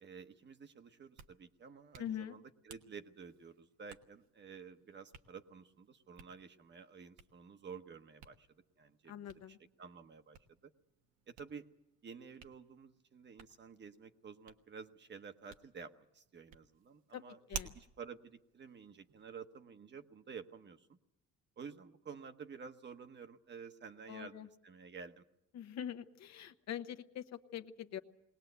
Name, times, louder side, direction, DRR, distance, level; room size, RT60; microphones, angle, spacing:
voice 1, 0.0-8.5 8.8-10.4 10.6-10.7 11.3-11.7 12.0-17.4 17.6-21.0 21.6-25.2, right 6 dB, 40° right, 8 dB, 1.1 m, -51 dB
Hands, 0.9-19.5, right 7 dB, 80° right, 1.4 m, -55 dB
voice 2, 2.0-2.4 9.1-9.6 17.1-17.2 17.5-17.7 24.1-24.5 25.5-28.0, left 10 dB, 65° left, 9 dB, 1.1 m, -44 dB
21.0 x 19.0 x 8.1 m, 0.84 s
cardioid pair, 115°, 29 cm